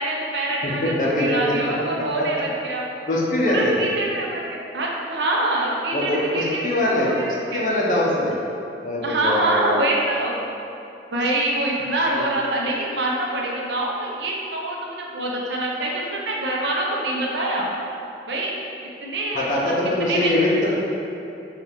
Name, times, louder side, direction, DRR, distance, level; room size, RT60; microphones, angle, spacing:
voice 1, 0.0-2.8 3.4-7.7 9.0-10.3 11.1-17.7 18.3-18.5 19.0-19.6 20.0-20.3, right 1 dB, 70° right, -2 dB, 0.6 m, -25 dB
voice 2, 0.6-1.7 2.1-2.4 3.0-3.8 5.9-7.1 7.5-8.3 8.8-9.9 12.1-12.2 19.3-20.8, left 1 dB, 45° left, -4 dB, 0.6 m, -22 dB
4.4 x 2.3 x 3.4 m, 2.8 s
head